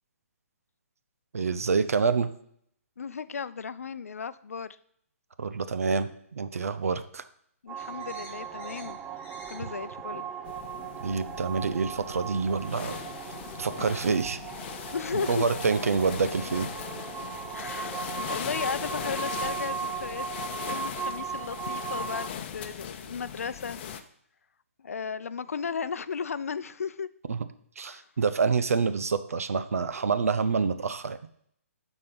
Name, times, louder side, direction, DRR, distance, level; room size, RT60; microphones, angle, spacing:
voice 1, 1.3-2.3 5.4-7.2 11.0-13.0 13.6-14.4 15.1-16.7 27.3-27.4 27.8-31.2, right 5 dB, 75° right, 11 dB, 0.8 m, -27 dB
voice 2, 3.0-4.8 7.6-9.0 9.5-10.3 14.9-15.5 15.8-15.9 17.5-20.3 20.5-23.8 24.8-27.1 27.9-28.0, left 6 dB, 75° left, 15 dB, 0.5 m, -35 dB
sound 1, 7.7-14.1, left 1 dB, 15° left, 4.1 m, -52 dB
sound 2, 7.7-22.3, right 8 dB, 15° right, 0.4 m, -38 dB
sound 3, 10.5-24.0, left 8 dB, 40° left, 0.8 m, -39 dB
12.0 x 4.3 x 5.4 m, 0.67 s
hypercardioid pair, 135°, 8 cm